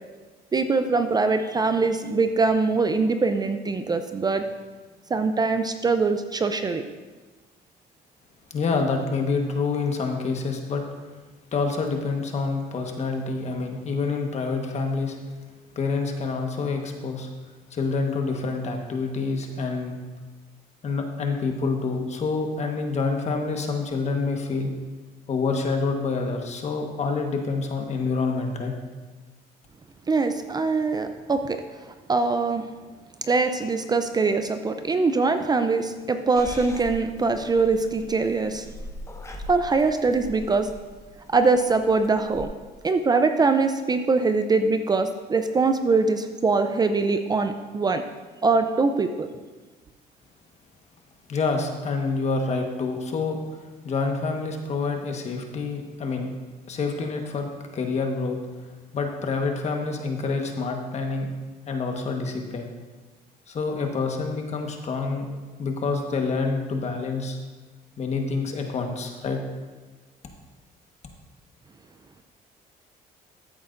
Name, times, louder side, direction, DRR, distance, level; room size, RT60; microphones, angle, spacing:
voice 1, 0.5-4.4 5.1-6.8 30.1-31.6 32.1-32.7 33.2-38.7 39.5-40.7 41.3-42.5 42.8-48.0 48.4-49.3, right 4 dB, 25° right, 8 dB, 0.5 m, -23 dB
voice 2, 8.5-10.8 11.5-15.2 15.7-17.3 17.7-20.0 20.8-24.7 25.3-28.7 51.3-53.4 53.8-56.3 56.7-58.4 58.9-61.3 61.7-62.7 63.5-67.4 68.0-69.4, left 4 dB, 40° left, 3 dB, 1.3 m, -27 dB
Purr / Meow, 36.4-42.4, left 1 dB, 15° left, 1.0 m, -41 dB
14.0 x 8.4 x 2.6 m, 1.3 s
cardioid pair, 110°, 17 cm